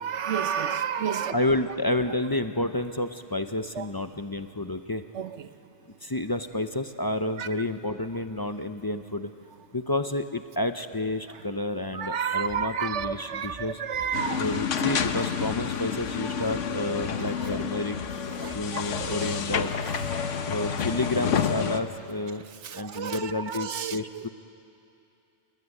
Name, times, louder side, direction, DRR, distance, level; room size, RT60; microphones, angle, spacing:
voice 1, 0.0-1.3 3.8-3.9 5.1-5.3 7.4-7.5 11.9-14.4 17.4-17.6 18.4-18.6 18.9-19.2 22.6-24.0, right 8 dB, 65° right, 1.1 m, -30 dB
voice 2, 1.3-5.0 6.0-9.3 9.7-13.8 14.4-18.0 18.5-19.7 20.5-22.4 22.7-24.3, left 2 dB, 25° left, 0.5 m, -30 dB
sound 1, 12.4-20.4, right 1 dB, 50° right, 6.2 m, -47 dB
sound 2, 14.1-21.8, left 7 dB, 70° left, 1.3 m, -29 dB
27.5 x 20.0 x 9.8 m
omnidirectional pair, 1.3 m